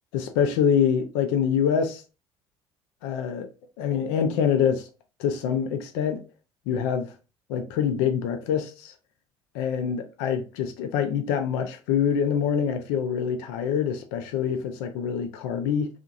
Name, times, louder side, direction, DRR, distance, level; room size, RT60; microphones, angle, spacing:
voice 1, 0.1-2.0 3.0-3.5 3.8-4.9 5.2-6.2 6.7-7.1 7.5-8.9 9.5-15.9, left 8 dB, 70° left, 0.5 m, -25 dB
2.8 x 2.5 x 2.4 m
hypercardioid pair, 55°, 15 cm